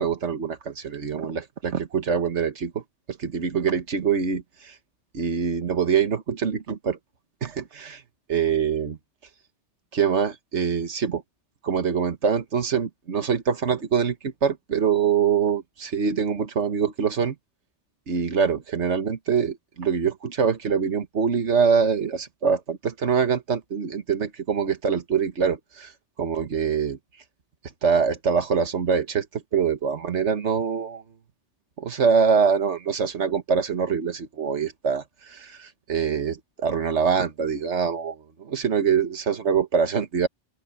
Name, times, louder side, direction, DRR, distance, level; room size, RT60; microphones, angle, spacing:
voice 1, 0.0-2.8 3.1-4.7 5.1-7.0 7.4-8.0 8.3-9.0 9.9-11.2 11.6-17.3 18.1-25.9 26.2-27.0 27.8-31.0 31.8-40.3, right 6 dB, 80° right, 1.7 m, -24 dB
open air
omnidirectional pair, 1.2 m